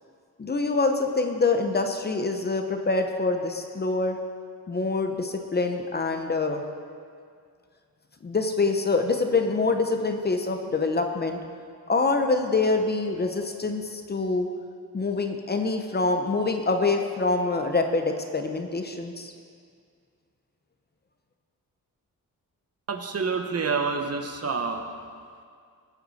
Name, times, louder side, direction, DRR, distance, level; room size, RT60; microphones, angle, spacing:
voice 1, 0.4-4.2 4.7-6.6 8.2-11.4 11.9-14.5 14.9-19.3, left 3 dB, 30° left, 5 dB, 0.7 m, -25 dB
voice 2, 22.9-24.8, right 5 dB, 45° right, 5 dB, 1.0 m, -28 dB
20.5 x 8.1 x 4.2 m, 2.2 s
wide cardioid pair, 170°, 35 cm